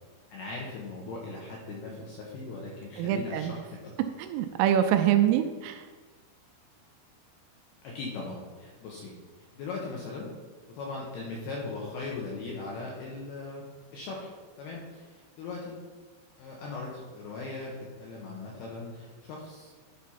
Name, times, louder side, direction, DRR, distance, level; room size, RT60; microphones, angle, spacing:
voice 1, 0.3-3.9 7.8-9.1 9.5-10.3 10.7-13.7 13.9-15.8 16.4-19.7, left 3 dB, 75° left, -2 dB, 2.4 m, -39 dB
voice 2, 3.0-3.5 4.2-5.9, right 10 dB, 85° right, 7 dB, 2.9 m, -25 dB
11.0 x 4.3 x 5.6 m, 1.4 s
omnidirectional pair, 5.9 m